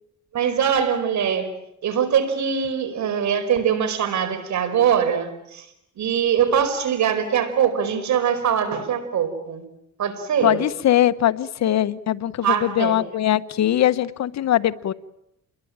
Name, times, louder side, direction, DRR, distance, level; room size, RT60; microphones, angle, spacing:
voice 1, 0.3-1.5 1.8-5.7 6.0-9.6 10.0-10.6 12.4-13.0, right 8 dB, 70° right, 9 dB, 5.1 m, -22 dB
voice 2, 10.4-14.9, left 12 dB, 60° left, 14 dB, 1.2 m, -21 dB
29.0 x 22.0 x 8.9 m, 0.81 s
cardioid pair, 90°, 30 cm